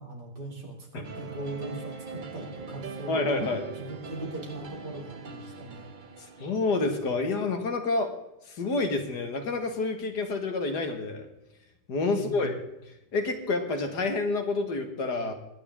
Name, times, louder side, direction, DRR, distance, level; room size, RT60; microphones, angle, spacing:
voice 1, 0.0-5.9 12.1-12.6, right 2 dB, 75° right, 0 dB, 3.6 m, -39 dB
sound 1, 1.0-7.3, right 5 dB, 40° right, 0.7 m, -42 dB
voice 2, 3.1-3.6 6.4-8.1 8.5-11.3 11.9-12.5 13.1-15.3, left 3 dB, 75° left, 5 dB, 2.2 m, -28 dB
21.0 x 9.7 x 3.6 m, 0.88 s
omnidirectional pair, 1.8 m